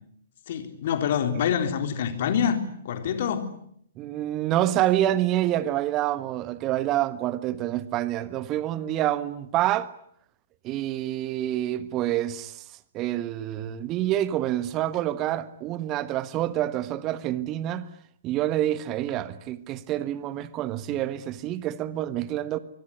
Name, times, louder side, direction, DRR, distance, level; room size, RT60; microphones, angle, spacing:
voice 1, 0.5-3.5, left 8 dB, 50° left, 3.8 m, -26 dB
voice 2, 4.0-9.9 10.6-17.9 18.2-22.6, right 13 dB, 30° right, 1.3 m, -27 dB
24.0 x 24.0 x 9.9 m
figure-of-eight pair, 115°, 0 cm